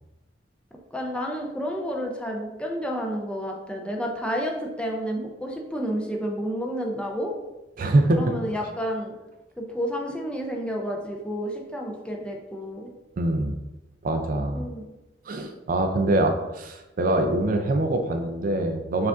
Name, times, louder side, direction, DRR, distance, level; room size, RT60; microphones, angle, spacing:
voice 1, 0.9-7.3 8.1-9.1 9.6-12.9 14.5-14.9, equal, 5° left, 0 dB, 0.5 m, -30 dB
voice 2, 7.8-8.2 13.2-13.6 14.0-14.7 15.3-19.1, right 1 dB, 50° right, 5 dB, 0.4 m, -24 dB
4.8 x 2.5 x 3.5 m, 1.0 s
head